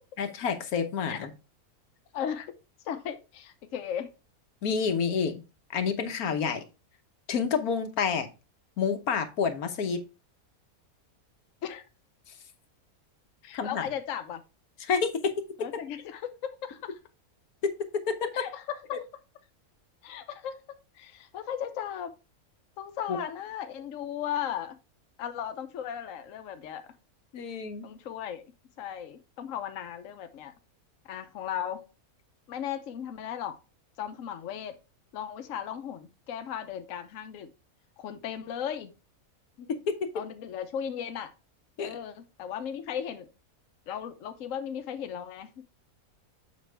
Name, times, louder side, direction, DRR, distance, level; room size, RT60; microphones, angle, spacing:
voice 1, 0.2-1.3 4.6-5.4 5.7-6.6 7.3-8.3 8.8-10.0 13.5-13.8 14.8-15.4 17.6-18.5 23.1-23.2 27.3-27.9 39.6-40.1 41.8-42.0, left 6 dB, 85° left, 1.4 m, -29 dB
voice 2, 2.1-2.5 2.8-4.1 11.6-11.8 13.4-14.4 15.6-17.0 18.3-18.8 20.0-22.1 22.8-24.8 25.2-26.9 27.8-28.4 28.8-30.5 31.1-31.9 32.5-33.6 34.0-34.7 35.1-37.5 38.0-38.9 40.1-41.3 41.8-43.3 43.9-45.6, left 9 dB, 65° left, 1.1 m, -36 dB
7.4 x 5.2 x 3.3 m
omnidirectional pair, 1.5 m